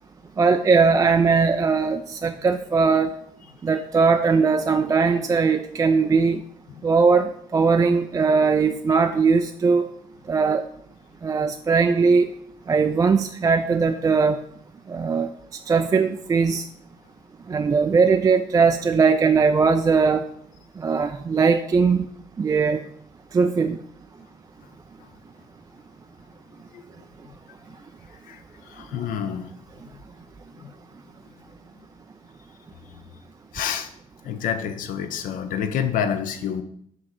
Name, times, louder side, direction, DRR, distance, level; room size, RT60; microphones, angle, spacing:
voice 1, 0.4-3.1 3.6-6.4 6.8-7.3 7.5-9.9 10.3-10.6 11.2-12.2 12.7-14.4 14.9-15.3 15.7-16.6 17.5-20.2 20.8-22.0 22.4-22.8 23.3-23.8, right 5 dB, 20° right, 6 dB, 0.3 m, -19 dB
voice 2, 28.7-29.5 29.9-30.0 30.6-30.7 33.5-33.9 34.2-36.6, left 8 dB, 50° left, 9 dB, 0.6 m, -28 dB
7.5 x 3.1 x 4.3 m, 0.69 s
figure-of-eight pair, 45°, 17 cm